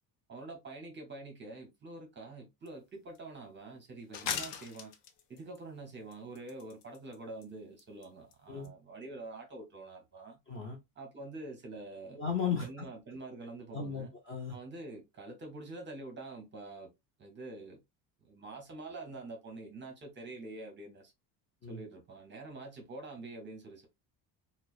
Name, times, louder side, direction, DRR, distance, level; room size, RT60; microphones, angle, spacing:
voice 1, 0.3-4.9 5.3-10.4 11.0-12.2 12.6-14.1 14.5-16.9 17.2-17.8 18.2-21.1 21.7-23.9, right 2 dB, 25° right, 0.6 m, -46 dB
sound 1, 2.7-2.8 3.1-3.2 4.1-5.6 6.1-7.2 7.4-7.5 7.8-8.1 8.3-8.4 8.6-8.7, left 8 dB, 65° left, 0.6 m, -39 dB
voice 2, 10.5-10.8 12.2-12.7 13.7-14.6 21.6-21.8, left 6 dB, 30° left, 0.4 m, -35 dB
2.8 x 2.0 x 2.3 m
cardioid pair, 165°, 46 cm